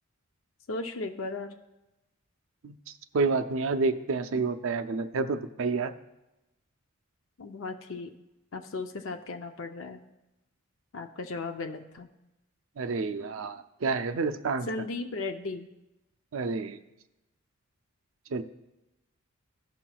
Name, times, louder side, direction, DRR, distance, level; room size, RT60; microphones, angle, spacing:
voice 1, 0.7-1.6 7.4-8.1 8.5-10.0 10.9-12.1 14.7-15.7, left 3 dB, 60° left, 5 dB, 0.5 m, -36 dB
voice 2, 3.1-5.9 12.8-14.7 16.3-16.8 18.3-18.4, right 4 dB, 65° right, 9 dB, 0.5 m, -29 dB
16.0 x 5.8 x 2.3 m, 0.98 s
head